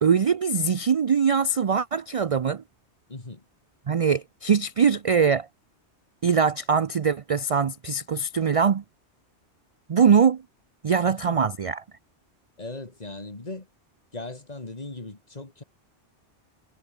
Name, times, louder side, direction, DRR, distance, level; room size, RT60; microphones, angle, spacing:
voice 1, 0.0-2.6 3.9-5.5 6.2-8.8 9.9-10.4 10.8-11.8, right 6 dB, 45° right, 0.4 m, -22 dB
voice 2, 3.1-3.4 11.2-11.4 12.6-13.7 14.1-15.6, left 2 dB, 35° left, 2.4 m, -38 dB
omnidirectional pair, 1.2 m